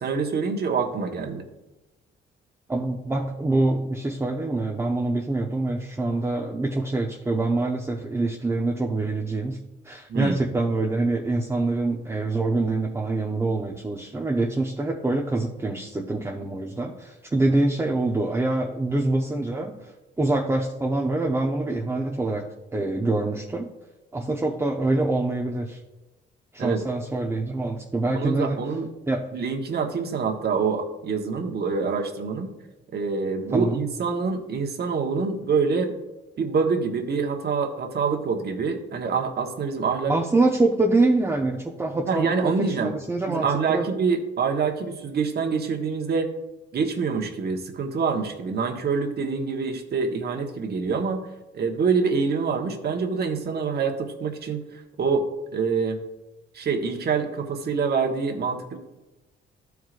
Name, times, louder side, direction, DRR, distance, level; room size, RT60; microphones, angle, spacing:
voice 1, 0.0-1.4 10.1-10.4 26.6-26.8 28.1-28.9 29.3-32.5 32.9-35.9 36.4-40.1 42.1-42.9 43.3-46.3 46.7-51.2 51.5-56.0 56.5-58.8, right 5 dB, 55° right, 3 dB, 1.3 m, -26 dB
voice 2, 2.7-9.6 9.8-19.9 20.2-22.4 22.7-23.7 24.1-25.8 26.5-28.6 29.1-29.3 33.5-33.8 40.1-43.9, right 2 dB, 15° right, 0 dB, 0.7 m, -25 dB
13.0 x 4.7 x 2.5 m, 1.1 s
cardioid pair, 90°, 20 cm